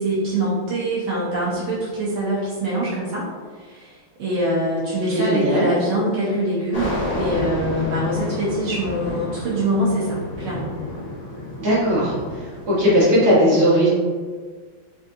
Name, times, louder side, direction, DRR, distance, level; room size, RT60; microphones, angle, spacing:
voice 1, 0.0-3.3 3.6-10.7, right 1 dB, 80° right, -7 dB, 1.6 m, -24 dB
voice 2, 5.1-5.7 11.6-12.1 12.7-13.9, equal, 50° right, -8 dB, 1.7 m, -17 dB
sound 1, 6.7-13.0, left 1 dB, 60° left, 1.8 m, -30 dB
4.5 x 2.6 x 2.6 m, 1.5 s
omnidirectional pair, 2.3 m